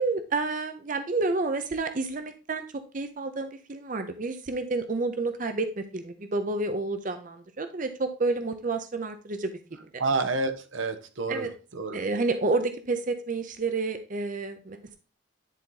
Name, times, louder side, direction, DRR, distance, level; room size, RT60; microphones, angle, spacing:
voice 1, 0.0-2.6 2.9-9.5 11.3-11.5 11.9-15.0, right 3 dB, 40° right, 8 dB, 0.6 m, -29 dB
voice 2, 10.0-12.0, right 3 dB, 85° right, 8 dB, 0.9 m, -29 dB
10.0 x 4.1 x 3.9 m, 0.34 s
head